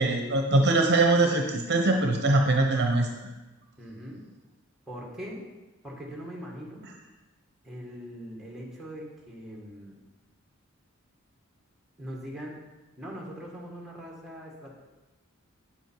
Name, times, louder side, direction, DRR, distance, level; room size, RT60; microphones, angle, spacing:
voice 1, 0.0-3.1, right 2 dB, 50° right, 3 dB, 0.9 m, -22 dB
voice 2, 3.8-4.2 4.9-5.4 5.8-6.8 7.6-10.0 12.0-12.6 13.0-14.8, equal, ahead, -2 dB, 1.9 m, -41 dB
8.8 x 7.9 x 4.6 m, 1.1 s
head